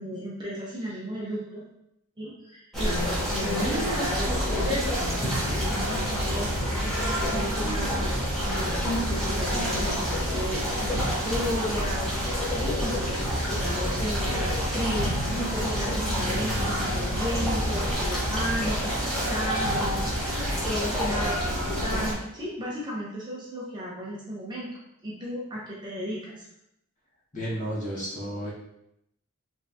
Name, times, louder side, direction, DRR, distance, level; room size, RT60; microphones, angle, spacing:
voice 1, 0.0-1.6 2.2-5.1 5.4-6.5 7.3-8.1 8.4-12.2 12.5-24.7 25.0-26.5, equal, 20° right, -5 dB, 0.6 m, -34 dB
sound 1, 2.7-22.1, equal, ahead, 1.0 m, -27 dB
voice 2, 27.3-28.5, equal, 35° left, -7 dB, 1.2 m, -32 dB
3.5 x 3.2 x 2.7 m, 0.79 s
head